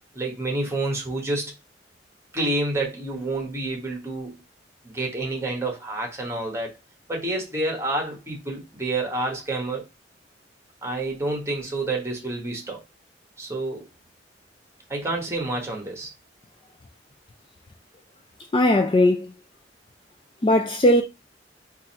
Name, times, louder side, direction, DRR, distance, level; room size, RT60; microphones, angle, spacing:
voice 1, 0.1-1.5 2.3-4.4 4.8-6.7 7.1-9.8 10.8-12.8 13.4-13.8 14.9-16.1, right 2 dB, 15° right, 1.2 m, -28 dB
voice 2, 18.5-19.3 20.4-21.0, left 1 dB, 30° left, 0.4 m, -18 dB
3.9 x 2.6 x 4.1 m
head